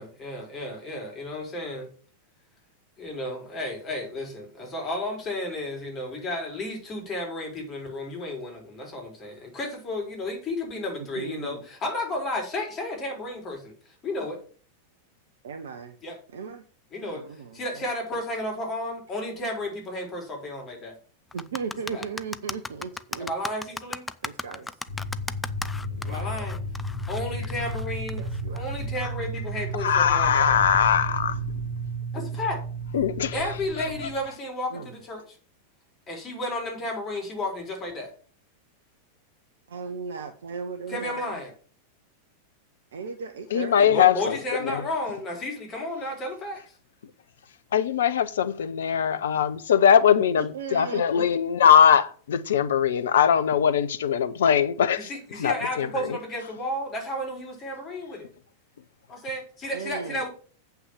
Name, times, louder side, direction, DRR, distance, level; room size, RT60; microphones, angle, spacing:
voice 1, 0.0-1.9 3.0-13.7 14.0-14.4 16.0-16.2 16.9-17.2 17.5-20.9 21.9-22.0 23.2-24.1 26.0-26.6 27.1-28.2 28.5-30.6 32.1-32.6 33.3-35.2 36.1-38.1 40.9-41.5 43.7-46.6 55.0-58.3 59.1-60.3, left 1 dB, 25° left, 4.3 m, -32 dB
voice 2, 11.1-11.6 15.4-16.0 16.3-16.6 17.0-17.9 21.3-23.3 24.2-24.8 25.9-26.5 28.1-28.6 33.9-34.1 34.7-34.9 39.7-41.4 42.9-43.9 50.4-51.3 59.7-60.3, right 5 dB, 65° right, 0.9 m, -37 dB
sound 1, 21.3-28.8, left 3 dB, 10° left, 0.5 m, -36 dB
sound 2, 24.9-34.3, right 1 dB, 85° right, 2.4 m, -32 dB
voice 3, 29.8-31.4 32.9-33.3 43.5-44.4 44.6-44.8 47.7-55.1 55.4-55.9, left 8 dB, 60° left, 0.7 m, -21 dB
8.1 x 5.8 x 7.2 m
figure-of-eight pair, 90°, 0 cm